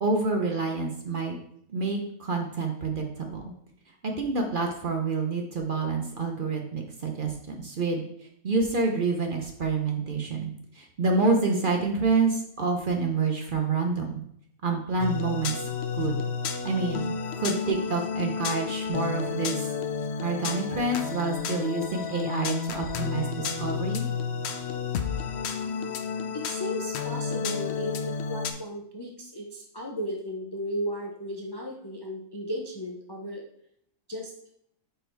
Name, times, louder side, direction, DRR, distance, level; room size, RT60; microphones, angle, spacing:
voice 1, 0.0-1.4 1.7-3.5 4.0-8.0 8.4-14.2 14.6-15.6 16.0-16.2 16.6-19.7 20.2-24.1, right 3 dB, 45° right, 2 dB, 0.7 m, -28 dB
sound 1, 15.0-28.5, left 6 dB, 65° left, 0.7 m, -31 dB
voice 2, 26.3-33.4 34.1-34.3, equal, 40° left, 0 dB, 0.3 m, -35 dB
5.1 x 4.3 x 4.4 m, 0.70 s
omnidirectional pair, 1.5 m